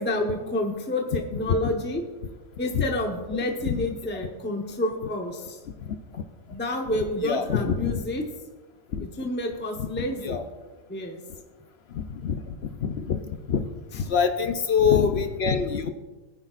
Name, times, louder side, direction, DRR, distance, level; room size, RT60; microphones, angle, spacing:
voice 1, 0.0-2.0 2.6-5.6 6.5-8.2 9.0-10.4 10.9-11.2, left 1 dB, 10° left, 2 dB, 0.9 m, -29 dB
voice 2, 5.8-6.2 7.2-8.0 8.9-9.1 9.8-10.4 11.9-12.5 12.8-13.2 13.5-13.7 13.9-15.9, left 6 dB, 60° left, 8 dB, 0.8 m, -25 dB
20.5 x 9.7 x 2.5 m, 1.2 s
omnidirectional pair, 1.3 m